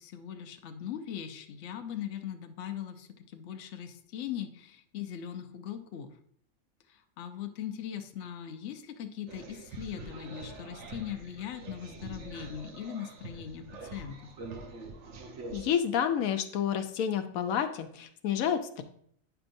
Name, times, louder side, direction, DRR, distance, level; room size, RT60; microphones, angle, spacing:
voice 1, 0.0-6.1 6.9-14.2, left 9 dB, 65° left, 6 dB, 0.9 m, -40 dB
sound 1, 9.3-15.7, right 3 dB, 60° right, 1.1 m, -45 dB
voice 2, 15.5-18.8, left 8 dB, 90° left, 7 dB, 1.1 m, -29 dB
8.9 x 5.8 x 2.6 m, 0.65 s
omnidirectional pair, 1.4 m